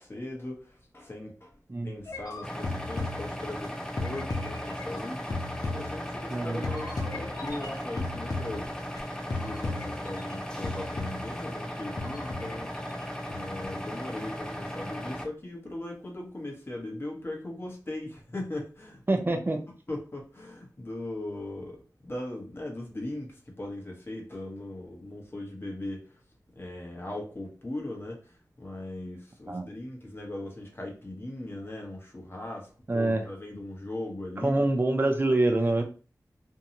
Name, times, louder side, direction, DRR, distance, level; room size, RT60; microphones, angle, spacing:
voice 1, 0.0-1.5 1.8-8.7 9.3-12.9 13.3-19.0 19.3-19.4 19.9-26.2 26.5-34.6 35.8-35.9, left 1 dB, 35° left, 0.9 m, -39 dB
sound 1, 2.1-3.7 4.0-6.3 6.6-9.0 9.3-10.4 10.6-11.4 12.0-13.0 13.3-13.8, left 3 dB, 65° left, 0.6 m, -36 dB
sound 2, 2.4-15.3, equal, 10° left, 0.4 m, -37 dB
voice 2, 6.3-6.6 19.1-19.6 29.5-29.7 32.9-33.2 34.4-35.8, right 2 dB, 30° right, 0.6 m, -25 dB
2.7 x 2.2 x 2.9 m
wide cardioid pair, 75°, 7 cm